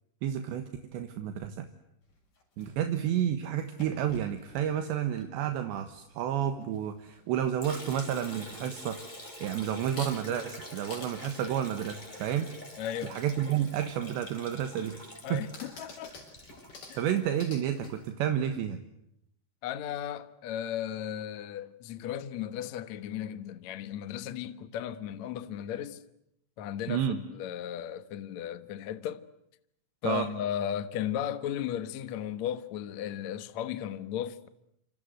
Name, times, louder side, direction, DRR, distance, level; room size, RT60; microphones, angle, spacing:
voice 1, 0.2-1.7 2.6-9.0 9.4-12.5 13.0-15.5 17.0-18.8 26.9-27.2 30.0-30.3, right 10 dB, 75° right, 3.5 m, -31 dB
sound 1, 2.0-3.1 3.6-6.1 6.3-7.5 7.7-8.4 9.0-9.1 9.7-10.4 10.9-13.8 14.4-18.1, left 3 dB, 50° left, 8.4 m, -50 dB
Liquid, 7.6-17.7, left 1 dB, 10° left, 5.3 m, -46 dB
voice 2, 12.8-13.2 15.2-16.1 16.9-17.0 19.6-26.0 26.6-29.2 30.0-34.5, left 10 dB, 85° left, 1.5 m, -35 dB
28.0 x 27.5 x 7.9 m
omnidirectional pair, 5.4 m